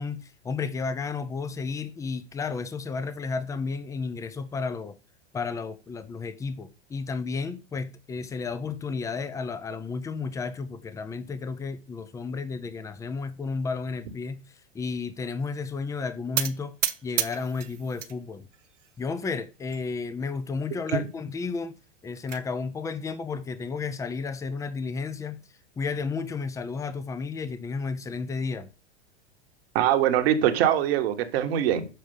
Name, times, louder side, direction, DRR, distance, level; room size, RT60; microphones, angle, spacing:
voice 1, 0.0-5.0 5.3-14.4 14.7-16.8 17.0-18.5 19.0-21.8 22.0-25.4 25.8-28.7, left 4 dB, 10° left, 0.5 m, -32 dB
sound 1, 16.4-18.1 18.5-19.2 19.7-19.8 20.1-20.2 20.6-20.7 21.8-22.4, right 9 dB, 85° right, 0.7 m, -31 dB
voice 2, 29.7-31.9, right 11 dB, 55° right, 1.3 m, -23 dB
6.7 x 4.8 x 5.4 m
hypercardioid pair, 100°, 35 cm